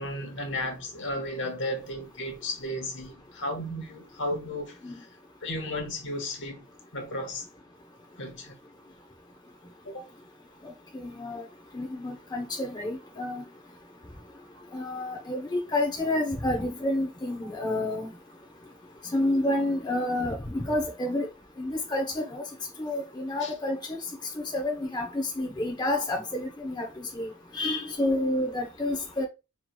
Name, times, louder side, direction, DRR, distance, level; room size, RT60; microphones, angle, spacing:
voice 1, 0.0-5.1 5.4-6.6 6.9-7.5 8.2-8.5 9.8-10.1 23.4-23.5, left 1 dB, 55° left, 1.2 m, -34 dB
voice 2, 10.9-11.4 11.7-13.4 14.7-18.1 19.1-21.3 21.6-22.4 22.8-24.0 24.5-29.3, left 1 dB, 20° left, 0.7 m, -29 dB
5.7 x 3.1 x 2.2 m
head